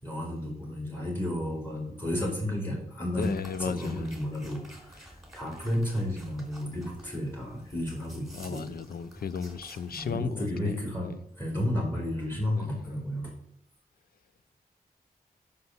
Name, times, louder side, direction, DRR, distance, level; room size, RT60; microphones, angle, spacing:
voice 1, 0.0-3.3 3.6-8.7 9.9-13.3, left 1 dB, 15° left, 4.5 m, -32 dB
voice 2, 3.2-4.1 8.3-11.2 12.5-12.8, left 6 dB, 80° left, 0.6 m, -35 dB
sound 1, 3.2-10.2, equal, 5° right, 3.7 m, -50 dB
9.6 x 5.6 x 8.0 m
wide cardioid pair, 90°, 15 cm